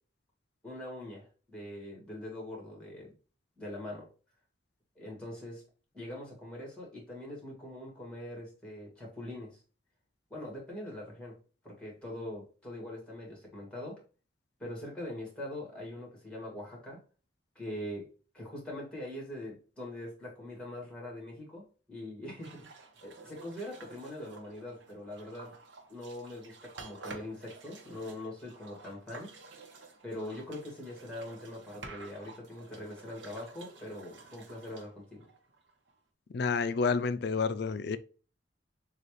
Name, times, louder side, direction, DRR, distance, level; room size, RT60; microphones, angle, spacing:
voice 1, 0.6-3.1 3.6-4.1 5.0-5.6 5.9-9.6 10.3-11.4 11.6-14.0 14.6-17.0 17.6-22.7 23.0-25.5 25.9-29.3 30.0-35.3, left 1 dB, 5° left, 1.9 m, -42 dB
sound 1, 22.4-35.9, right 3 dB, 80° right, 0.9 m, -51 dB
voice 2, 36.3-38.0, left 5 dB, 60° left, 0.4 m, -29 dB
6.7 x 2.4 x 3.2 m
head